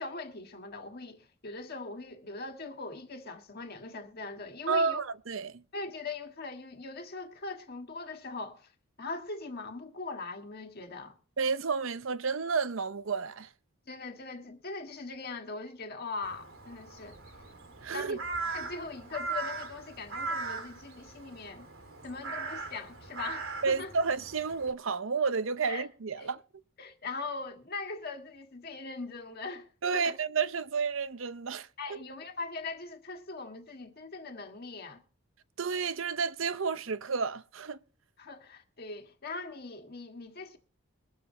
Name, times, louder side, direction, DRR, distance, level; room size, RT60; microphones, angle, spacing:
voice 1, 0.0-5.0 5.7-8.7 9.0-11.2 13.9-17.2 17.9-18.2 18.5-21.7 22.0-23.9 25.6-25.9 26.2-26.3 26.8-29.7 29.9-30.2 31.8-35.0 38.2-40.6, left 3 dB, 45° left, 1.6 m, -41 dB
voice 2, 4.7-5.6 11.4-13.5 17.8-18.2 23.6-26.4 29.8-31.7 35.6-37.8, right 5 dB, 65° right, 0.7 m, -31 dB
Crow, 16.2-24.7, right 4 dB, 85° right, 2.3 m, -39 dB
21.5 x 7.3 x 4.3 m
head